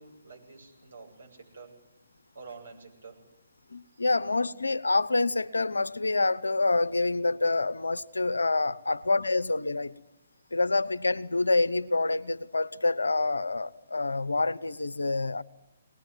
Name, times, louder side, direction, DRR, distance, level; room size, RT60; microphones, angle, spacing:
voice 1, 0.0-1.8 2.3-3.2 3.9-4.1 10.3-10.5, right 4 dB, 70° right, 7.6 m, -49 dB
voice 2, 3.7-9.9 10.5-15.4, left 3 dB, 80° left, 1.0 m, -27 dB
23.5 x 20.0 x 9.2 m
figure-of-eight pair, 130°, 0 cm